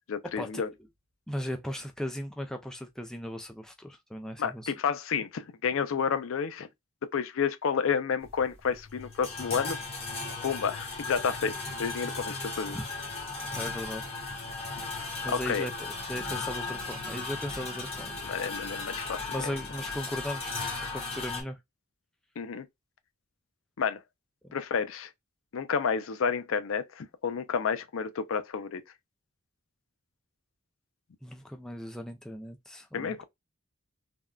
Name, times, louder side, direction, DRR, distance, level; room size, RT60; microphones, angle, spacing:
voice 1, 0.1-0.7 4.4-6.7 7.1-9.8 10.4-12.8 14.9-15.7 18.3-19.5 22.4-22.7 23.8-24.0 24.5-25.1 25.5-28.8 32.9-33.2, left 6 dB, 75° left, 0.4 m, -30 dB
voice 2, 1.3-4.7 12.7-12.8 13.4-14.1 15.2-18.2 19.3-21.6 24.4-24.6 31.2-33.2, equal, 5° left, 0.3 m, -38 dB
sound 1, 8.2-21.4, left 3 dB, 30° left, 1.0 m, -36 dB
3.5 x 2.1 x 2.3 m
head